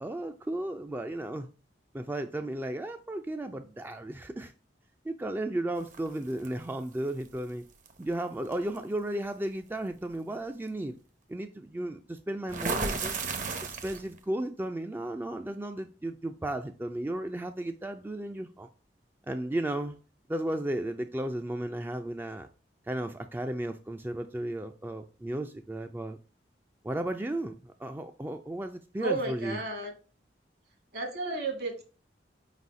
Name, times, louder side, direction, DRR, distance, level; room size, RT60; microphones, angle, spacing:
voice 1, 0.0-1.5 1.9-4.5 5.0-7.6 8.0-11.0 11.3-13.2 13.6-18.7 19.3-20.0 20.3-22.5 22.9-26.2 26.8-29.6, right 1 dB, 10° right, 0.3 m, -34 dB
sound 1, 5.9-6.5 7.9-8.0 8.5-8.8 12.5-14.2, right 4 dB, 45° right, 0.8 m, -33 dB
voice 2, 29.0-29.9 30.9-31.8, right 2 dB, 65° right, 1.8 m, -32 dB
4.9 x 4.1 x 4.6 m
head